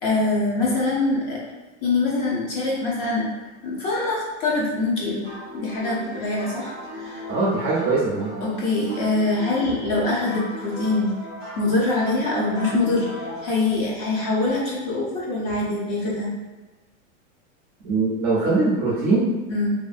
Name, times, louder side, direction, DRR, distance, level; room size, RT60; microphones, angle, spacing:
voice 1, 0.0-1.4 1.8-3.3 3.6-5.2 5.5-7.3 8.4-11.1 11.6-16.3 19.5-19.7, left 2 dB, 35° left, -5 dB, 0.6 m, -24 dB
sound 1, 5.2-13.5, equal, 10° left, 1.0 m, -37 dB
voice 2, 7.3-8.3 17.8-19.3, right 3 dB, 30° right, -7 dB, 0.4 m, -21 dB
2.5 x 2.5 x 2.4 m, 1.2 s
supercardioid pair, 155°, 41 cm